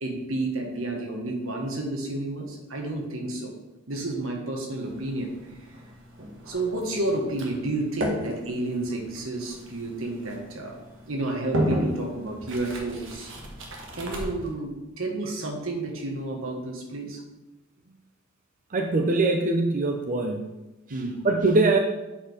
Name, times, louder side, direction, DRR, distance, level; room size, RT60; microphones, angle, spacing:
voice 1, 0.0-3.5 3.9-5.3 6.5-10.8 11.1-13.3 13.9-14.7 15.0-17.2 20.9-21.2, right 2 dB, 80° right, 2 dB, 1.4 m, -31 dB
sound 1, 4.7-14.5, equal, 65° right, 1.3 m, -34 dB
voice 2, 18.7-20.4 21.2-21.8, right 3 dB, 40° right, 3 dB, 0.6 m, -22 dB
7.5 x 4.5 x 5.0 m, 1.0 s
head